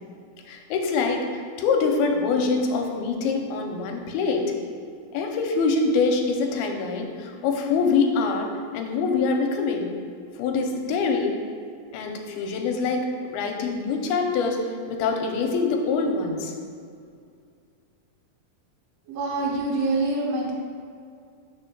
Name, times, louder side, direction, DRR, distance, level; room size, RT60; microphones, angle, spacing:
voice 1, 0.5-4.5 5.1-9.9 10.4-11.3 11.9-16.5, left 4 dB, 90° left, 3 dB, 2.5 m, -25 dB
voice 2, 19.1-20.5, right 2 dB, 85° right, -1 dB, 1.4 m, -25 dB
5.0 x 4.4 x 5.8 m, 2.3 s
omnidirectional pair, 4.4 m